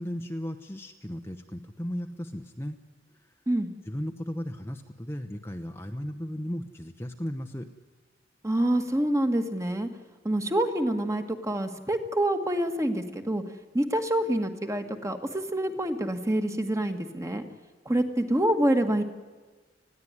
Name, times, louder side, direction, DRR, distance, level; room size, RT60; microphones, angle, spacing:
voice 1, 0.0-2.8 3.9-7.7, equal, 15° left, 5 dB, 0.9 m, -35 dB
voice 2, 8.4-9.9 10.3-13.4 13.7-17.4 17.9-19.0, right 1 dB, 15° right, 6 dB, 1.7 m, -26 dB
20.5 x 15.0 x 9.7 m, 1.3 s
head